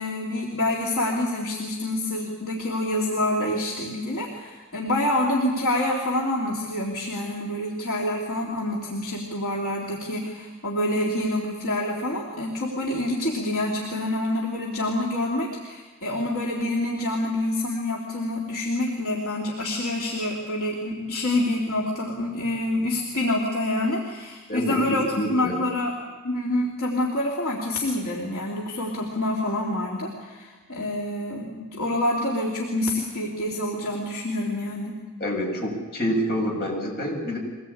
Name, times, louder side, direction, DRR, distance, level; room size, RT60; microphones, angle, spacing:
voice 1, 0.0-25.9 26.2-35.0, left 1 dB, 70° left, -3 dB, 3.3 m, -27 dB
voice 2, 24.5-25.6 35.2-37.4, equal, 45° left, -1 dB, 7.6 m, -27 dB
24.0 x 19.0 x 8.8 m, 1.3 s
head